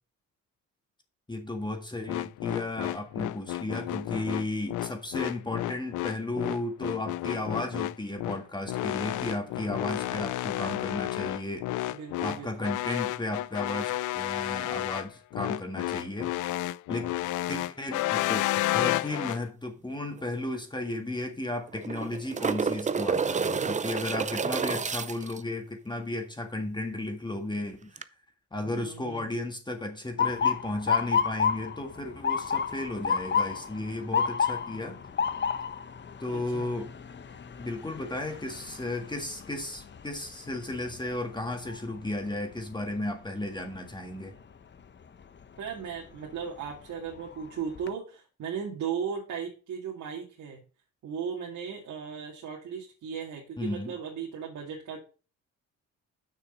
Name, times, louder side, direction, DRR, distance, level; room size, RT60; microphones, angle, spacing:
voice 1, 1.3-11.6 12.2-16.3 16.9-17.1 17.5-18.4 18.7-28.0 28.5-35.0 36.2-36.9 37.6-44.3 53.6-53.9, left 2 dB, 15° left, 1.7 m, -34 dB
sound 1, 2.1-19.4, left 15 dB, 80° left, 0.5 m, -31 dB
voice 2, 11.9-12.7 28.6-29.3 36.3-36.7 45.6-50.6 51.0-55.0, right 7 dB, 70° right, 2.2 m, -37 dB
sound 2, 20.2-20.3 20.5-20.6 21.7-25.4 28.0-28.1, right 5 dB, 25° right, 0.6 m, -29 dB
Motor vehicle (road) / Siren, 30.2-42.1 42.5-43.0 43.8-44.1 45.9-46.2 46.7-46.8 47.2-47.9, left 6 dB, 40° left, 0.9 m, -31 dB
6.4 x 6.3 x 5.3 m
cardioid pair, 90°, 30 cm